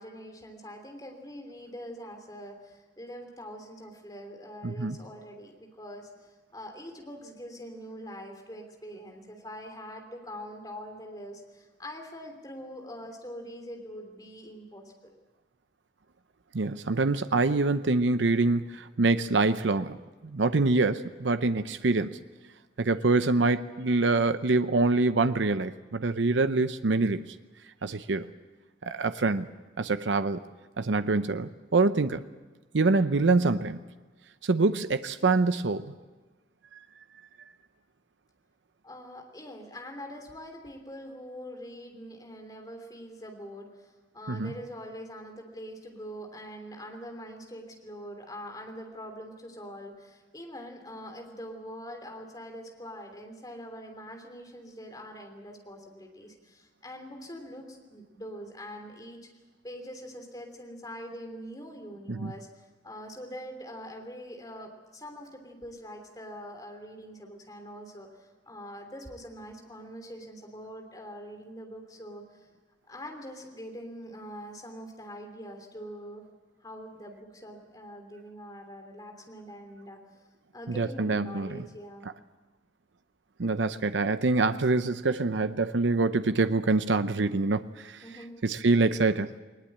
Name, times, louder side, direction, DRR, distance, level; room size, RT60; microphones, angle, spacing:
voice 1, 0.0-15.1 38.8-59.2 59.6-72.5 72.9-76.2 76.6-80.0 80.5-82.1 88.0-88.4, equal, 20° left, 3 dB, 3.2 m, -43 dB
voice 2, 4.6-5.0 16.5-20.0 20.2-22.1 22.8-27.2 27.8-28.3 28.8-29.5 29.8-30.4 30.8-32.2 32.7-33.8 34.4-35.9 44.3-44.5 62.1-62.3 80.7-81.6 83.4-88.0 88.4-89.3, right 3 dB, 90° right, 11 dB, 0.7 m, -25 dB
20.5 x 20.0 x 8.7 m, 1.2 s
head